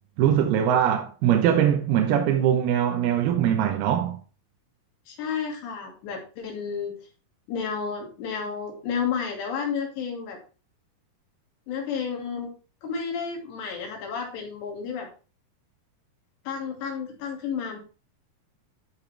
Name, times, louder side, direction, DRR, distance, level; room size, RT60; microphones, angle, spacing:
voice 1, 0.2-4.2, right 9 dB, 75° right, 2.8 m, -22 dB
voice 2, 5.1-7.0 7.5-10.4 11.7-12.5 12.8-15.1 16.5-17.8, left 6 dB, 85° left, 4.6 m, -31 dB
14.0 x 5.7 x 3.4 m
omnidirectional pair, 4.8 m